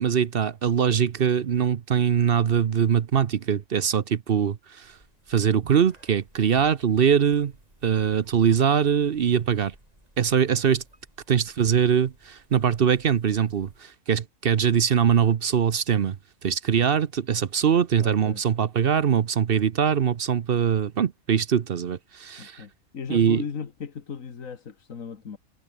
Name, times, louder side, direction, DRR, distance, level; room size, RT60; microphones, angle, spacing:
voice 1, 0.0-4.9 5.3-7.5 7.8-9.7 10.2-10.8 11.3-16.2 16.4-22.6 23.1-23.4, right 8 dB, 50° right, 0.9 m, -22 dB
sound 1, 4.8-13.8, right 1 dB, 30° right, 7.9 m, -58 dB
voice 2, 18.0-18.4 22.4-25.4, left 6 dB, 90° left, 2.0 m, -37 dB
omnidirectional pair, 1.3 m